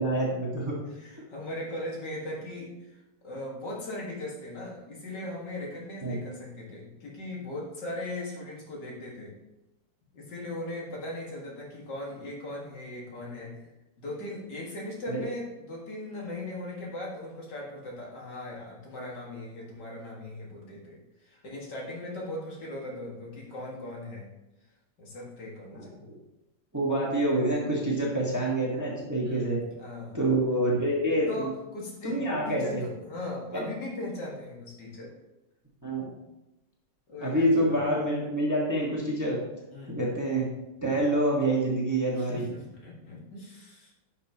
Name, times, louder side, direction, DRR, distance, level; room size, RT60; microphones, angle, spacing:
voice 1, 0.0-0.7 6.0-6.2 15.1-15.2 25.7-26.1 26.7-29.6 30.1-31.5 32.0-32.8 33.5-33.6 35.8-36.1 37.2-39.4 39.9-40.5 40.8-42.5, right 1 dB, 10° right, -4 dB, 1.4 m, -27 dB
voice 2, 0.9-9.4 10.1-13.7 14.0-24.3 25.0-26.0 29.2-30.2 31.3-35.1 37.1-37.8 39.7-40.0 42.2-43.9, left 1 dB, 65° left, -3 dB, 2.5 m, -39 dB
11.0 x 5.9 x 3.0 m, 0.96 s
omnidirectional pair, 2.0 m